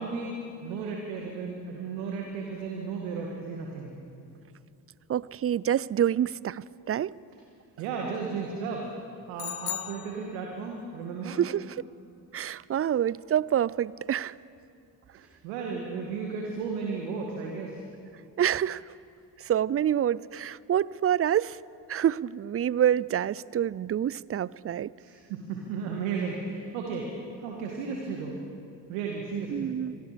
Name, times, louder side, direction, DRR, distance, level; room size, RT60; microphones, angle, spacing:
voice 1, 0.0-3.9 7.8-8.9 9.3-11.4 15.1-17.8 25.0-27.1 27.4-28.4 28.9-29.7, right 5 dB, 80° right, 0 dB, 2.1 m, -34 dB
voice 2, 5.1-7.1 11.2-11.8 12.3-14.4 18.4-18.9 19.4-21.6 21.9-24.9 29.5-29.9, right 10 dB, 30° right, 22 dB, 0.5 m, -27 dB
sound 1, 9.4-10.8, left 15 dB, 60° left, 0.8 m, -37 dB
26.0 x 20.5 x 5.2 m, 2.6 s
hypercardioid pair, 45°, 50 cm